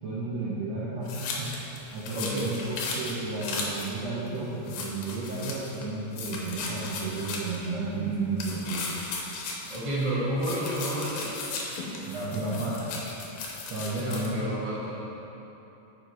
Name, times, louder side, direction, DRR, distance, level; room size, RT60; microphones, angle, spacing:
voice 1, 0.0-8.9 12.1-13.0 13.7-14.5, right 3 dB, 75° right, -8 dB, 1.5 m, -32 dB
sound 1, 1.1-3.9 4.3-4.4 4.7-5.9 6.1-7.7 8.4-10.1 10.4-14.3, left 4 dB, 80° left, 2.6 m, -36 dB
voice 2, 2.1-2.5 9.7-11.3 14.0-15.0, right 1 dB, 40° right, -9 dB, 0.7 m, -30 dB
7.8 x 5.3 x 5.0 m, 3.0 s
omnidirectional pair, 4.2 m